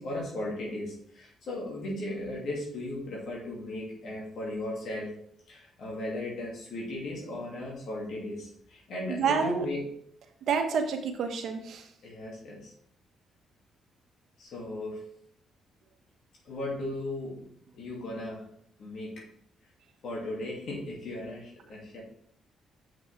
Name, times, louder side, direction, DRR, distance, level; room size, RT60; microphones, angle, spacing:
voice 1, 0.0-5.1 5.5-9.9 12.0-12.7 14.4-15.0 16.4-17.4 17.7-18.4 18.8-19.2 20.0-22.0, left 1 dB, 65° left, -3 dB, 2.7 m, -36 dB
voice 2, 9.1-9.6 10.5-11.8, right 6 dB, 70° right, 5 dB, 1.2 m, -28 dB
7.2 x 5.9 x 3.6 m, 0.67 s
cardioid pair, 90°, 0 cm